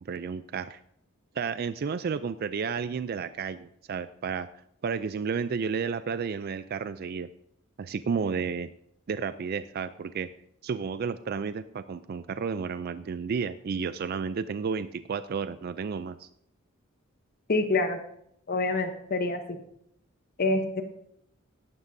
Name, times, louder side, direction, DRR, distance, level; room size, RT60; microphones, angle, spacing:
voice 1, 0.0-0.8 1.3-4.5 4.8-7.3 7.8-8.7 9.1-10.3 10.6-16.3, right 6 dB, 45° right, 13 dB, 0.3 m, -32 dB
voice 2, 17.5-18.0 18.5-19.6 20.4-20.8, left 2 dB, 45° left, 6 dB, 0.9 m, -26 dB
16.5 x 11.5 x 2.7 m, 0.73 s
head